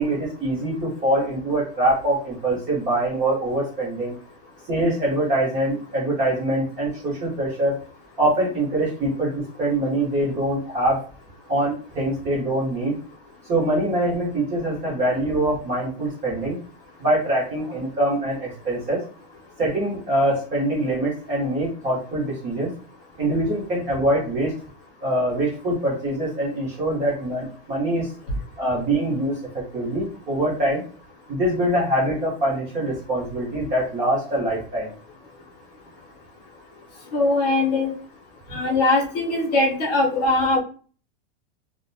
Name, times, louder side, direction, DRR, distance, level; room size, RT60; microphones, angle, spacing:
voice 1, 0.0-4.2 4.7-7.8 8.2-11.0 11.5-12.9 13.5-16.6 17.0-19.0 19.6-22.7 23.2-24.5 25.0-28.1 28.6-30.8 31.3-34.9, right 1 dB, 20° right, -5 dB, 0.7 m, -24 dB
voice 2, 37.1-37.9 38.5-40.6, left 2 dB, 40° left, -2 dB, 0.8 m, -21 dB
2.4 x 2.1 x 2.5 m, 0.40 s
supercardioid pair, 175°, 31 cm